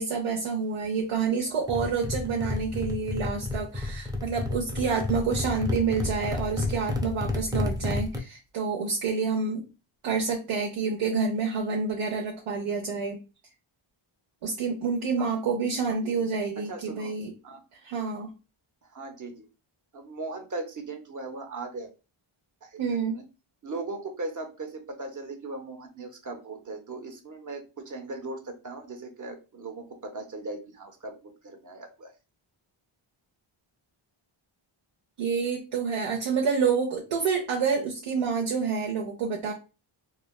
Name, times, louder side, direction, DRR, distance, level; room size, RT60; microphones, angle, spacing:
voice 1, 0.0-9.6 10.0-13.2 14.4-17.3 17.8-18.3 22.8-23.2 35.2-39.5, right 5 dB, 80° right, -1 dB, 0.7 m, -28 dB
sound 1, 1.7-8.2, left 2 dB, 10° right, 0.4 m, -31 dB
voice 2, 16.6-17.1 17.4-17.6 18.8-19.5 19.9-21.9 22.6-23.2 23.6-32.1, right 3 dB, 40° right, 5 dB, 0.7 m, -38 dB
3.2 x 2.3 x 2.2 m, 0.31 s
wide cardioid pair, 90°, 50 cm